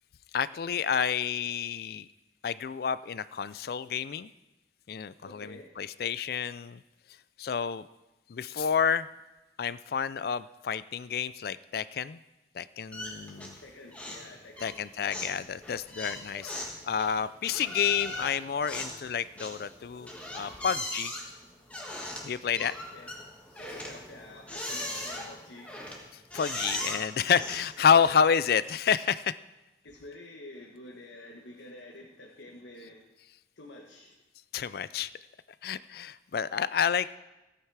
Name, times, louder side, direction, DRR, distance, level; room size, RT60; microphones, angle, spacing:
voice 1, 0.3-2.1 2.4-4.3 4.9-6.8 7.4-7.8 8.3-9.1 9.6-12.2 12.6-13.6 14.6-16.6 16.8-21.1 22.2-22.7 26.3-29.3 34.5-35.1 35.6-37.2, left 7 dB, 55° left, 17 dB, 0.3 m, -29 dB
voice 2, 5.2-5.7 13.6-14.8 22.4-23.1 23.6-25.7 29.8-33.0 33.6-34.1, left 1 dB, 80° left, 1 dB, 1.3 m, -48 dB
sound 1, 12.9-13.7 13.9-14.3 14.6-28.4, left 1 dB, 5° left, 1.5 m, -39 dB
15.0 x 8.8 x 4.7 m, 1.0 s
head